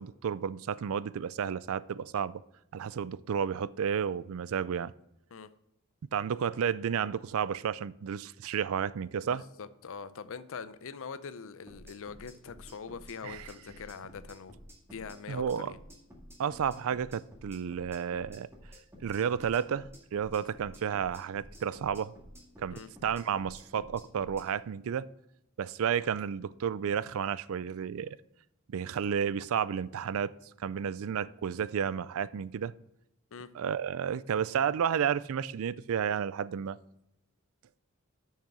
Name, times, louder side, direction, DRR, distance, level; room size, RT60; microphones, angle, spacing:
voice 1, 0.0-2.4 2.7-4.9 6.1-9.4 13.2-13.5 15.3-15.7 16.4-18.5 19.0-22.1 22.6-25.1 25.6-28.2 28.7-30.3 30.6-32.7 33.5-36.8, right 7 dB, 65° right, 0.4 m, -32 dB
voice 2, 9.2-14.5 14.9-15.8 22.7-22.9 33.3-33.5, left 5 dB, 65° left, 0.6 m, -43 dB
sound 1, 11.7-24.5, equal, 10° right, 1.8 m, -52 dB
6.7 x 6.5 x 6.1 m
head